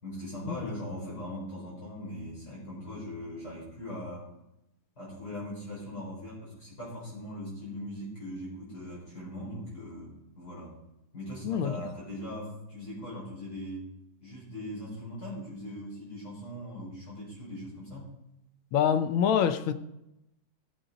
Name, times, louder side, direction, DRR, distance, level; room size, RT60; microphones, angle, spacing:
voice 1, 0.0-4.3 5.0-10.8 11.1-13.9 14.2-18.1, equal, 45° left, 5.5 m, -40 dB
voice 2, 11.4-11.9 18.7-19.7, left 8 dB, 75° left, 1.4 m, -26 dB
15.0 x 8.0 x 3.9 m
omnidirectional pair, 2.4 m